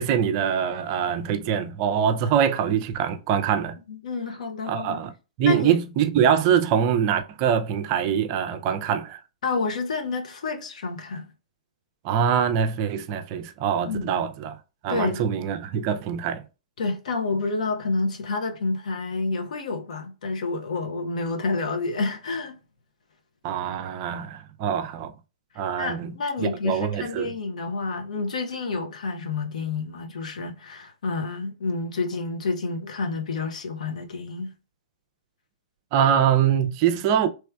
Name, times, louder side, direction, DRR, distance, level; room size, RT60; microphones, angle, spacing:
voice 1, 0.0-3.8 4.7-5.1 5.4-9.2 12.0-14.6 14.8-16.4 23.4-25.1 25.6-27.3 35.9-37.3, right 8 dB, 40° right, 0.4 m, -24 dB
voice 2, 3.9-5.0 5.4-5.8 9.4-11.3 13.9-14.0 14.9-15.2 16.8-22.6 25.8-34.5, left 3 dB, 65° left, 0.8 m, -29 dB
3.2 x 3.0 x 2.3 m
figure-of-eight pair, 120°, 4 cm